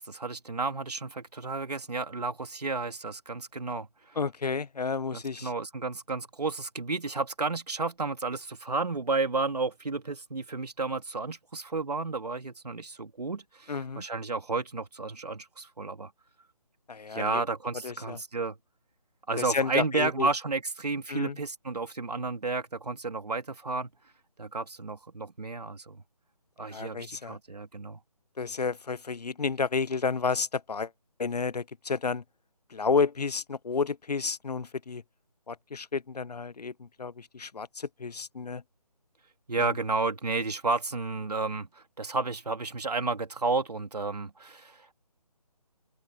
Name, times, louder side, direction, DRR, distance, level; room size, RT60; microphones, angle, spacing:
voice 1, 0.0-4.2 5.1-16.1 17.1-18.6 19.3-23.9 24.4-26.0 26.6-28.0 39.5-44.9, right 3 dB, 80° right, 3.0 m, -32 dB
voice 2, 4.2-5.5 13.7-14.0 16.9-17.4 17.8-18.2 19.4-20.3 21.1-21.4 26.7-27.4 28.4-30.9 31.2-32.2 32.7-35.0 35.5-38.6 39.6-39.8, left 5 dB, 80° left, 0.8 m, -31 dB
open air
figure-of-eight pair, 160°, 20 cm